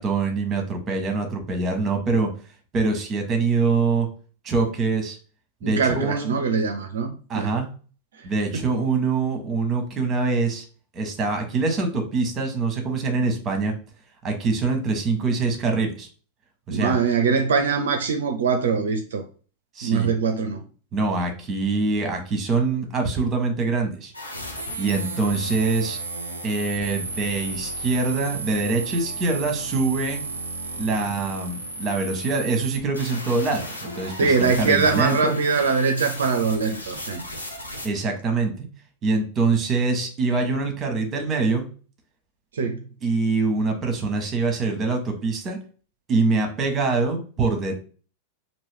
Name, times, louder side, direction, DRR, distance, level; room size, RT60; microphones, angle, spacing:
voice 1, 0.0-2.3 2.7-4.1 4.4-5.2 5.6-6.4 7.3-7.7 8.2-10.6 10.9-13.7 14.2-16.1 16.7-17.0 19.7-20.1 20.9-24.1 24.8-26.0 26.4-30.2 30.8-35.4 37.8-38.7 39.0-41.6 43.0-45.6 46.1-47.8, right 3 dB, 25° right, 1.0 m, -24 dB
voice 2, 5.6-7.5 8.1-8.3 16.7-19.2 19.8-20.6 34.2-37.2 42.5-42.9, right 5 dB, 65° right, 0.4 m, -22 dB
sound 1, 24.1-37.9, right 2 dB, 80° left, 0.8 m, -34 dB
2.9 x 2.6 x 3.4 m
figure-of-eight pair, 90°, 0 cm